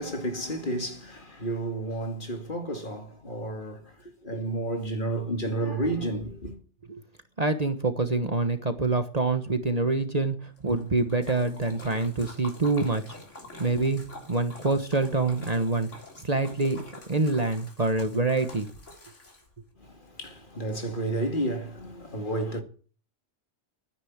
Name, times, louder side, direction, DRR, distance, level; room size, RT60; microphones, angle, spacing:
voice 1, 0.0-6.6 19.8-22.6, right 1 dB, 45° left, 2.3 m, -31 dB
voice 2, 7.4-13.2 13.6-15.9 16.2-16.8 17.1-18.7, right 3 dB, 35° right, 1.3 m, -26 dB
Splash splatter, 10.6-19.7, left 2 dB, 85° left, 3.8 m, -46 dB
13.5 x 9.8 x 7.3 m
omnidirectional pair, 1.2 m